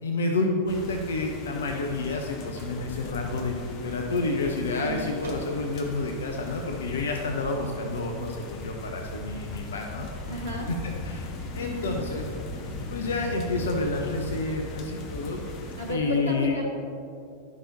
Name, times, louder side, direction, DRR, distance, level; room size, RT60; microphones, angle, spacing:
voice 1, 0.0-10.1 10.7-12.2 12.9-15.4 15.9-16.6, left 3 dB, 65° left, 2 dB, 0.6 m, -29 dB
sound 1, 0.7-15.9, left 2 dB, 35° left, 0.8 m, -38 dB
sound 2, 2.3-6.1 6.4-6.5, right 3 dB, 55° right, 1.6 m, -45 dB
voice 2, 4.8-5.1 10.3-10.7 11.4-12.0 15.8-16.7, equal, 90° left, -5 dB, 1.1 m, -33 dB
11.0 x 5.8 x 2.8 m, 2.6 s
figure-of-eight pair, 90°, 0 cm